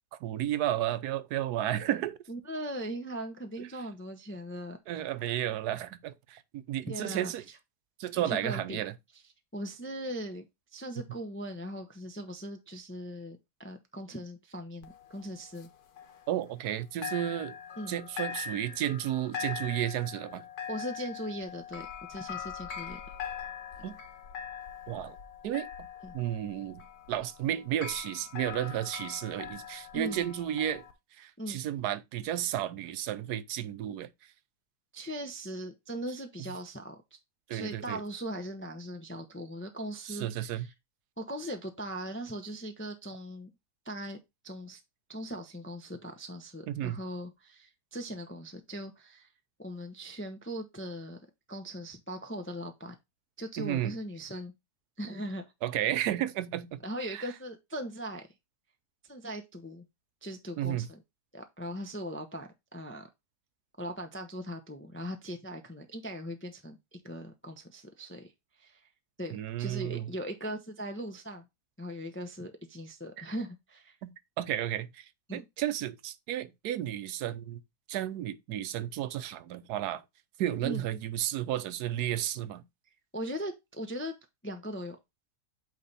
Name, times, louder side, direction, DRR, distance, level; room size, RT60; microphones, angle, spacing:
voice 1, 0.2-2.2 3.6-3.7 4.9-7.4 8.0-8.9 16.3-17.6 17.9-20.5 23.8-24.0 24.9-25.2 25.4-25.9 26.1-30.8 31.2-34.1 37.5-38.0 40.1-40.7 46.7-47.0 53.6-53.9 55.6-56.8 57.1-57.2 60.6-60.9 69.3-70.1 73.2-73.3 74.0-75.0 75.3-77.6 77.9-80.0 80.4-82.6, right 12 dB, 80° right, 1.2 m, -33 dB
voice 2, 2.3-4.8 6.9-7.3 8.2-8.8 9.5-10.4 10.7-15.7 17.8-18.0 20.7-23.0 23.8-23.9 26.0-26.2 29.9-30.2 31.4-31.6 34.9-37.0 37.5-40.7 41.2-43.5 43.8-44.2 44.4-44.8 45.1-49.3 49.6-51.2 51.5-53.0 53.4-54.5 55.0-55.4 56.8-58.3 59.0-59.8 60.2-61.0 61.3-63.1 63.8-68.3 68.6-68.8 69.2-71.4 71.8-74.0 75.3-75.4 80.6-80.8 83.1-84.1 84.4-85.0, equal, 15° left, 0.4 m, -39 dB
sound 1, 14.8-16.8 17.0-30.9, left 7 dB, 75° left, 1.5 m, -42 dB
8.6 x 3.4 x 4.1 m
omnidirectional pair, 1.7 m